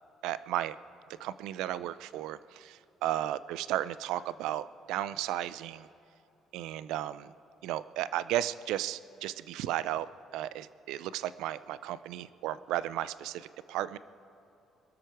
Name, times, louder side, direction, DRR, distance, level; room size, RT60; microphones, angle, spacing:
voice 1, 0.2-0.8 1.2-5.9 6.5-7.3 7.6-10.1 10.3-14.0, right 13 dB, 90° right, 16 dB, 0.4 m, -34 dB
22.0 x 12.5 x 4.7 m, 3.0 s
cardioid pair, 115°, 0 cm